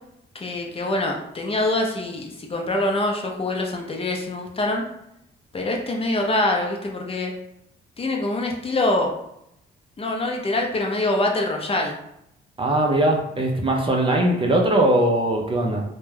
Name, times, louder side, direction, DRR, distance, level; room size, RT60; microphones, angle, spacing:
voice 1, 0.3-4.9 5.5-7.3 8.0-9.1 10.0-12.0, left 2 dB, 30° left, 1 dB, 0.5 m, -24 dB
voice 2, 12.6-15.8, right 1 dB, 25° right, 1 dB, 0.5 m, -20 dB
2.2 x 2.1 x 3.2 m, 0.79 s
cardioid pair, 90°, 20 cm